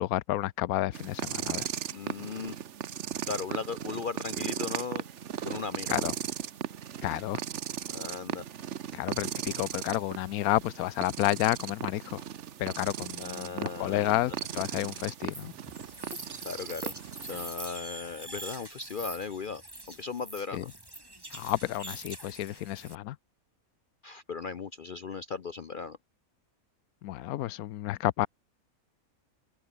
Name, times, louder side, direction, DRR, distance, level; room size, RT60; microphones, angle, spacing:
voice 1, 0.0-1.7 5.9-6.1 7.0-7.4 8.9-12.2 12.6-15.5 20.5-20.6 21.3-23.2 27.0-28.3, left 15 dB, 80° left, 1.1 m, -30 dB
sound 1, 0.9-17.5, right 9 dB, 55° right, 1.1 m, -37 dB
voice 2, 1.9-2.6 3.3-5.1 5.4-6.1 7.9-8.5 13.2-14.4 16.4-16.9 17.2-19.6 19.9-20.7 24.0-26.0, left 5 dB, 50° left, 0.7 m, -37 dB
sound 2, 15.3-22.9, right 1 dB, 15° right, 2.7 m, -44 dB
omnidirectional pair, 1.5 m